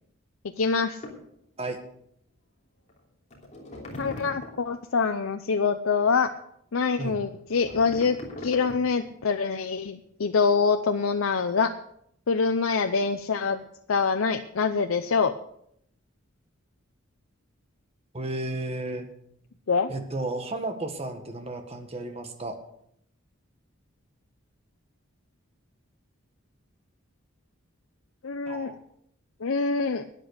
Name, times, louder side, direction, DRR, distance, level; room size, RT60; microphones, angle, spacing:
voice 1, 0.6-1.0 4.0-6.3 6.7-11.7 12.3-13.6 13.9-15.3 19.7-19.9 28.2-28.8 29.4-30.1, left 5 dB, 80° left, 7 dB, 0.6 m, -25 dB
sound 1, 1.0-1.2 2.9-3.0 3.3-4.7 7.3-9.1, left 1 dB, 35° left, 3.2 m, -40 dB
voice 2, 18.1-19.1 19.9-22.6 28.5-28.8, right 2 dB, 30° right, 5 dB, 1.6 m, -33 dB
13.0 x 9.9 x 6.5 m, 0.72 s
head